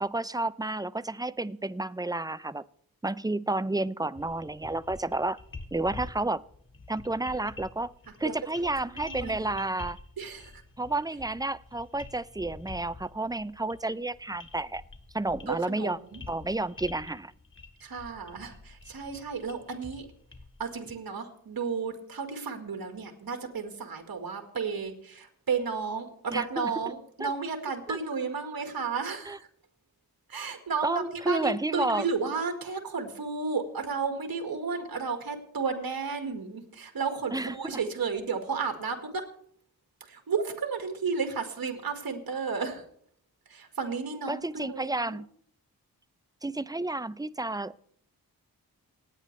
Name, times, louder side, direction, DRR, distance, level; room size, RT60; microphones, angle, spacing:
voice 1, 0.0-2.6 3.0-5.4 5.7-6.4 6.9-7.9 8.2-10.0 10.8-14.8 15.1-16.0 16.3-17.3 26.3-26.7 27.2-27.3 27.9-28.0 29.3-29.4 30.8-32.1 37.3-37.7 44.3-45.3 46.4-47.8, right 2 dB, 10° right, 16 dB, 0.5 m, -31 dB
sound 1, 4.1-20.9, left 3 dB, 35° left, 2.0 m, -47 dB
voice 2, 8.8-9.6 10.2-10.6 15.5-16.2 17.8-20.1 20.6-29.5 30.3-39.2 40.0-42.8 43.5-45.2, right 5 dB, 70° right, 5 dB, 1.8 m, -33 dB
27.5 x 9.2 x 3.3 m, 0.64 s
cardioid pair, 55°, 36 cm